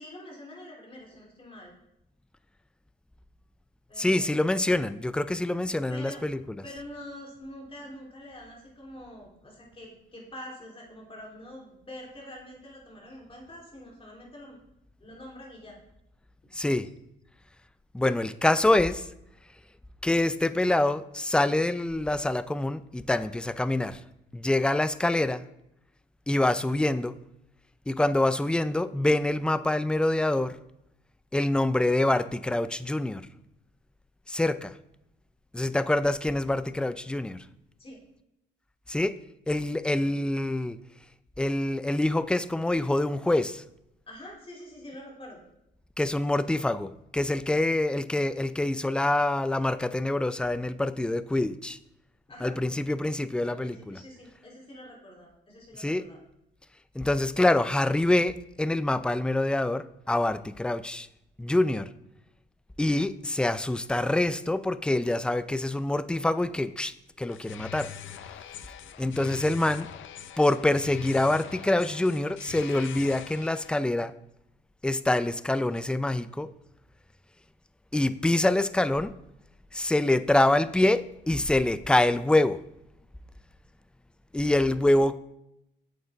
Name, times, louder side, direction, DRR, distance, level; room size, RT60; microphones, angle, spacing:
voice 1, 0.0-1.7 3.9-4.4 5.9-6.2 6.6-14.6 15.0-15.8 37.8-38.0 44.1-45.4 52.3-52.5 53.4-56.2, left 1 dB, 30° left, -2 dB, 3.2 m, -45 dB
voice 2, 4.0-6.7 16.5-16.9 17.9-19.0 20.0-24.0 24.3-25.4 26.3-27.1 27.9-30.6 31.3-33.3 34.3-34.7 35.5-37.4 38.9-39.1 39.5-40.8 41.4-43.6 46.0-51.8 52.4-54.0 55.7-56.0 57.0-61.1 61.4-61.9 62.8-67.9 69.0-69.9 70.4-74.1 74.8-76.5 77.9-79.1 79.7-82.6 84.3-85.2, left 1 dB, 5° left, 14 dB, 0.4 m, -25 dB
sound 1, 67.3-73.8, left 11 dB, 75° left, 0.7 m, -43 dB
8.0 x 7.9 x 3.5 m, 0.83 s
cardioid pair, 90°, 20 cm